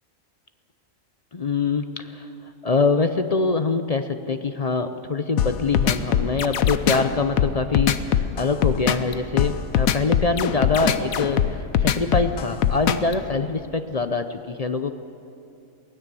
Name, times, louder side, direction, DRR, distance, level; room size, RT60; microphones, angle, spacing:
voice 1, 1.3-2.3 2.6-14.9, left 4 dB, 40° left, 9 dB, 0.5 m, -24 dB
sound 1, 5.4-13.1, left 9 dB, 85° left, 1.2 m, -21 dB
23.5 x 16.5 x 6.9 m, 2.7 s
omnidirectional pair, 1.4 m